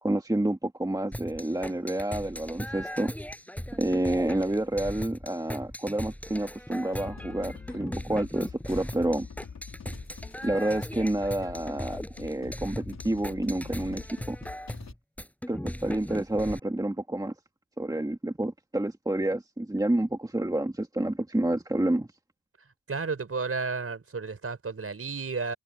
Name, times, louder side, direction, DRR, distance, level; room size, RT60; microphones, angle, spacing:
voice 1, 0.0-3.1 3.7-9.3 10.4-14.4 15.5-17.3 17.8-22.1, right 1 dB, 10° right, 2.0 m, -29 dB
sound 1, 1.1-16.6, equal, 5° left, 6.4 m, -38 dB
sound 2, 6.9-14.9, left 5 dB, 55° left, 3.9 m, -45 dB
voice 2, 22.9-25.5, right 4 dB, 45° right, 4.7 m, -32 dB
supercardioid pair, 50°, 33 cm